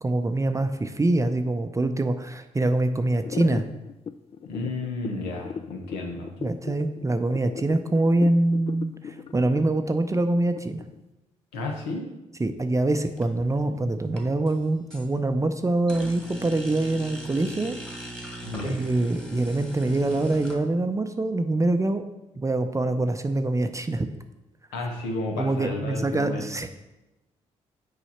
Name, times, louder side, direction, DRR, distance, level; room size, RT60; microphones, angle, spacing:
voice 1, 0.0-3.6 6.4-10.8 12.4-17.8 18.6-22.0 22.4-24.1 25.4-26.7, right 2 dB, 20° right, 8 dB, 0.6 m, -24 dB
sound 1, 3.2-11.0, left 6 dB, 35° left, 0.4 m, -37 dB
voice 2, 4.4-6.3 11.5-12.0 18.4-18.8 24.7-26.5, left 2 dB, 75° left, 1 dB, 1.2 m, -32 dB
sound 2, 13.1-13.6 14.0-15.1 15.9-20.6, right 1 dB, 5° left, 1.7 m, -39 dB
6.9 x 4.8 x 4.3 m, 1.0 s
hypercardioid pair, 45°, 16 cm